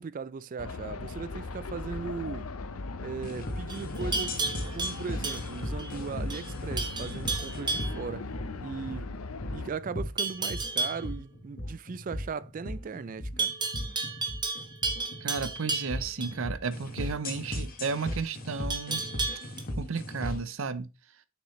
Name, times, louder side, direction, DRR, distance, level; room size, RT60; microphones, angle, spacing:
voice 1, 0.0-2.5 3.0-4.3 4.7-8.3 8.6-9.1 9.5-13.5, right 5 dB, 40° right, 0.3 m, -38 dB
sound 1, 0.6-9.7, left 3 dB, 75° left, 0.7 m, -39 dB
sound 2, 3.2-20.5, left 1 dB, 40° left, 1.4 m, -37 dB
Livestock farm animals working animals, 3.7-5.9 6.3-6.5 6.8-8.0 10.2-11.1 13.4-16.3 18.7-19.6, right 4 dB, 20° right, 1.1 m, -32 dB
voice 2, 15.2-19.1 19.8-20.9, right 4 dB, 65° right, 0.7 m, -33 dB
7.2 x 6.0 x 3.1 m
head